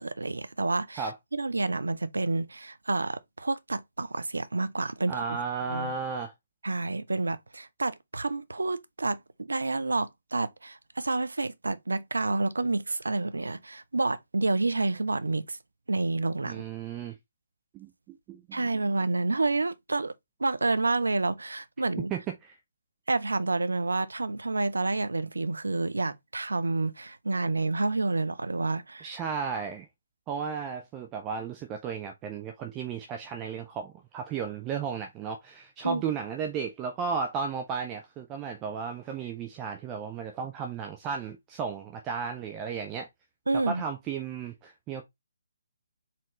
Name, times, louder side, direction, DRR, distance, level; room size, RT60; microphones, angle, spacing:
voice 1, 0.0-5.4 5.7-5.9 6.6-15.6 15.9-16.6 18.5-20.1 20.4-22.1 23.1-29.1 35.8-36.0 43.5-43.8, right 3 dB, 75° right, 0.5 m, -29 dB
voice 2, 5.1-6.3 16.5-17.2 17.7-18.7 22.1-22.5 29.0-29.9 30.3-43.1 43.7-45.0, right 6 dB, 20° right, 0.5 m, -34 dB
4.3 x 3.7 x 3.0 m
figure-of-eight pair, 140°, 0 cm